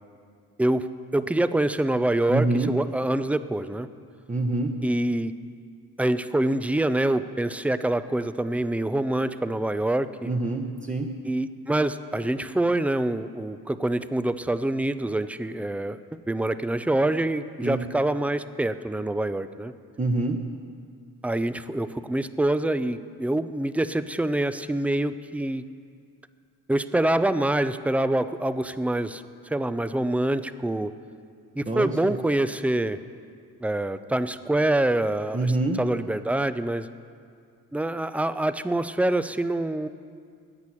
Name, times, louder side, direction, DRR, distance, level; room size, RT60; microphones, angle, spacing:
voice 1, 1.1-3.9 4.8-5.3 6.0-10.3 11.3-16.0 16.3-19.7 21.2-25.6 26.7-30.9 31.6-33.0 33.6-35.5 35.8-36.9 37.7-39.9, right 1 dB, 5° right, 13 dB, 0.5 m, -25 dB
voice 2, 2.3-2.7 4.3-4.8 10.2-11.1 17.6-17.8 20.0-20.4 31.7-32.1 35.3-35.8, right 2 dB, 20° right, 2 dB, 1.1 m, -26 dB
11.0 x 8.3 x 9.9 m, 2.2 s
supercardioid pair, 60°, 38 cm